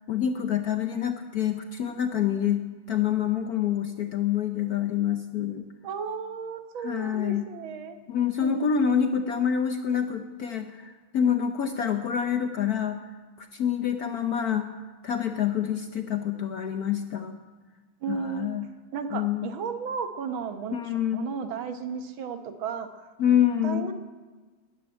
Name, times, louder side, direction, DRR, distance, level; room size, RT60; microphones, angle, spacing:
voice 1, 0.1-5.7 6.8-7.5 8.1-13.0 13.4-14.7 15.0-17.4 18.1-18.7 19.1-19.5 20.7-21.3 23.2-23.8, left 9 dB, 60° left, 7 dB, 1.0 m, -27 dB
voice 2, 5.8-8.0 8.4-9.2 18.0-18.5 18.9-20.8 21.1-23.9, right 6 dB, 70° right, 8 dB, 1.8 m, -34 dB
13.5 x 10.5 x 9.9 m, 1.3 s
omnidirectional pair, 2.3 m